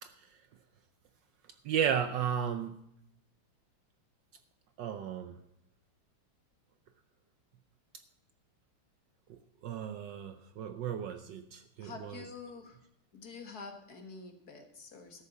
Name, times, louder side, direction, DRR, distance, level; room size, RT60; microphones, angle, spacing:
voice 1, 1.6-2.7 4.8-5.4 9.3-9.4 9.6-12.2, right 8 dB, 70° right, 10 dB, 1.2 m, -34 dB
voice 2, 11.8-12.8 13.1-15.2, left 4 dB, 50° left, 5 dB, 1.8 m, -47 dB
13.0 x 6.7 x 7.2 m, 0.79 s
omnidirectional pair, 2.4 m